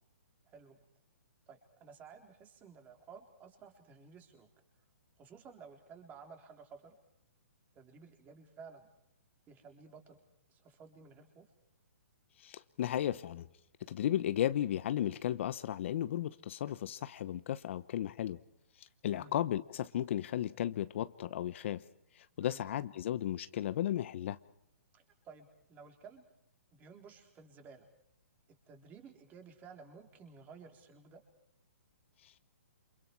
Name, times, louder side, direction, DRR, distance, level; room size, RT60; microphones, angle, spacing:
voice 1, 0.5-0.8 1.5-4.5 5.2-6.9 7.7-8.9 9.5-10.2 10.5-11.4 19.1-19.3 22.4-22.6 24.9-26.2 26.7-27.9 28.7-31.2, right 5 dB, 20° right, 5 dB, 3.8 m, -54 dB
voice 2, 12.4-13.5 13.9-18.4 18.8-21.8 22.2-24.4 32.2-32.4, left 11 dB, 50° left, 14 dB, 0.9 m, -35 dB
29.0 x 27.5 x 4.6 m, 0.76 s
hypercardioid pair, 150°, 8 cm